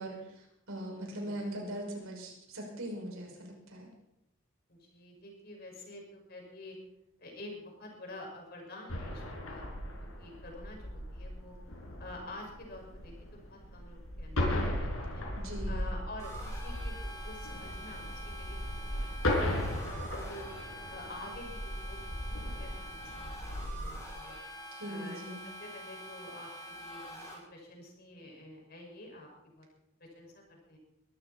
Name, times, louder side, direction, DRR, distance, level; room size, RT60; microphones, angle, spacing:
voice 1, 0.0-3.9 15.3-15.9 24.7-25.5, right 1 dB, 90° right, 0 dB, 5.9 m, -41 dB
voice 2, 1.0-1.4 4.7-6.8 7.2-11.6 12.0-15.2 15.7-18.6 18.9-20.5 20.9-22.0 22.2-24.3 24.8-29.7 30.0-30.8, left 1 dB, 45° left, 0 dB, 5.7 m, -49 dB
sound 1, 8.9-24.0, left 1 dB, 85° left, 5.0 m, -37 dB
sound 2, 16.2-27.3, equal, 15° left, 6.0 m, -46 dB
22.5 x 13.5 x 4.3 m, 0.87 s
head